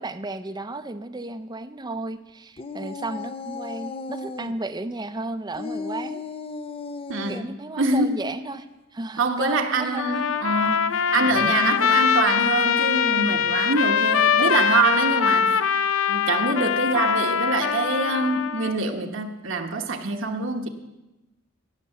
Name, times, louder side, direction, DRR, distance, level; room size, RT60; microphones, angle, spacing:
voice 1, 0.0-6.2 7.3-8.7 8.9-10.1 11.1-11.3 15.4-15.5, right 2 dB, 20° right, 0.6 m, -33 dB
sound 1, 2.6-4.5 5.5-7.5 11.3-13.5, left 3 dB, 30° left, 0.5 m, -36 dB
voice 2, 7.1-7.4 7.8-8.1 9.2-15.5 16.1-20.7, right 3 dB, 65° right, 1.2 m, -25 dB
Trumpet, 10.0-18.8, left 7 dB, 75° left, 0.6 m, -22 dB
17.5 x 6.9 x 6.7 m
head